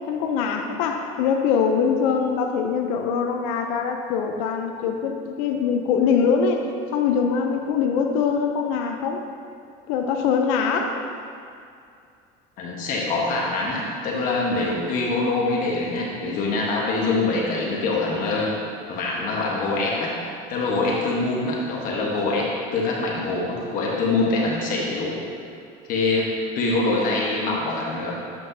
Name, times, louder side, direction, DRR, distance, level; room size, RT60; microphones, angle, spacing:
voice 1, 0.1-9.2 9.9-11.0, left 6 dB, 90° left, 3 dB, 0.6 m, -23 dB
voice 2, 12.6-18.5 18.9-20.1 20.5-22.5 22.7-25.1 25.9-26.3 26.5-28.1, left 3 dB, 55° left, -3 dB, 1.2 m, -24 dB
7.6 x 5.9 x 2.7 m, 2.4 s
cardioid pair, 140°, 17 cm